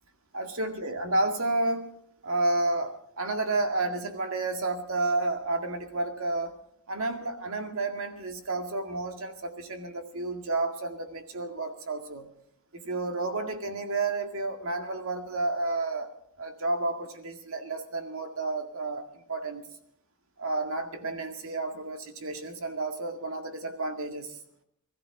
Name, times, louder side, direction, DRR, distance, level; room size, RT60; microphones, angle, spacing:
voice 1, 0.3-1.9 2.2-6.5 6.9-12.3 12.7-16.1 16.4-19.6 20.4-24.4, right 2 dB, 70° right, 5 dB, 2.0 m, -31 dB
20.5 x 14.0 x 4.7 m, 0.70 s
head